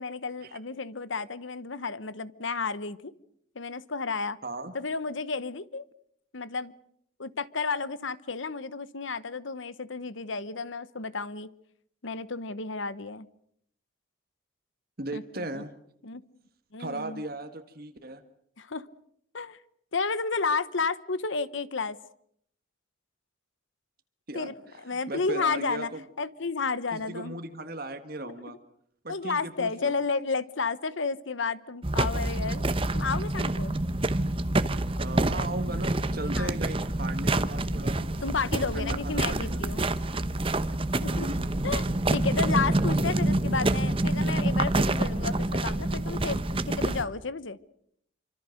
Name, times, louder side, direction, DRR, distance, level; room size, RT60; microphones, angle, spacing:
voice 1, 0.0-3.1 3.5-4.4 4.7-5.8 6.3-6.7 7.2-11.5 12.0-13.3 15.1-15.6 16.0-16.2 16.7-17.2 18.6-18.9 19.3-19.6 19.9-22.0 24.3-25.9 26.2-27.4 28.2-28.6 29.1-32.6 32.9-33.8 36.3-36.5 38.2-39.9 41.0-41.3 41.6-47.6, left 4 dB, 75° left, 16 dB, 1.0 m, -32 dB
voice 2, 4.4-4.7 15.0-15.7 16.8-18.2 24.3-24.5 24.9-26.0 26.9-28.6 29.0-29.9 34.9-38.1 38.7-39.6 41.0-41.5, right 2 dB, 50° right, 7 dB, 1.6 m, -37 dB
sound 1, 31.8-47.0, right 2 dB, 25° right, 0.9 m, -27 dB
26.5 x 25.5 x 6.6 m, 0.71 s
head